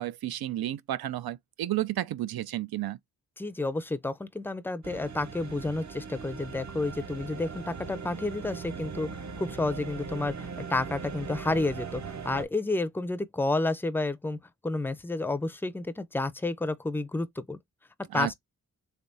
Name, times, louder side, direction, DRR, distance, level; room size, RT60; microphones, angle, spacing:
voice 1, 0.0-3.0 18.1-18.3, right 13 dB, 75° right, 0.5 m, -32 dB
voice 2, 3.4-14.4 14.6-17.6 18.1-18.3, left 2 dB, 5° left, 0.4 m, -30 dB
sound 1, 4.8-12.4, right 5 dB, 50° right, 1.0 m, -39 dB
3.4 x 3.1 x 2.6 m
cardioid pair, 70°, 36 cm